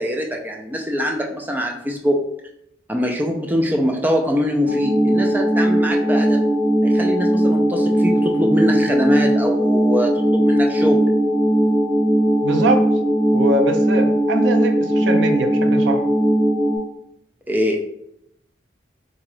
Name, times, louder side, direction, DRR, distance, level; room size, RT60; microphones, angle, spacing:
voice 1, 0.0-2.2 2.9-6.4 6.8-11.1 17.5-17.8, equal, 10° right, 1 dB, 0.4 m, -23 dB
sound 1, 4.7-16.8, right 1 dB, 40° right, 0.9 m, -18 dB
voice 2, 12.4-12.9 13.3-16.0, right 2 dB, 80° right, 7 dB, 0.4 m, -22 dB
3.8 x 2.3 x 3.1 m, 0.77 s
head